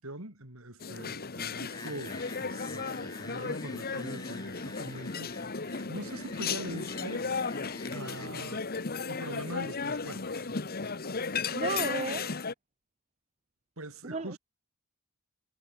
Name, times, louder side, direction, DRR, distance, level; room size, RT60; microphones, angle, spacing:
voice 1, 0.0-7.3 7.9-8.7 9.1-10.5 13.8-14.4, right 1 dB, 65° right, 5.9 m, -43 dB
sound 1, 0.8-12.5, left 4 dB, 45° left, 1.3 m, -35 dB
sound 2, 1.7-8.3, left 2 dB, 15° left, 4.3 m, -46 dB
voice 2, 11.5-12.3 14.0-14.4, right 4 dB, 30° right, 0.8 m, -33 dB
head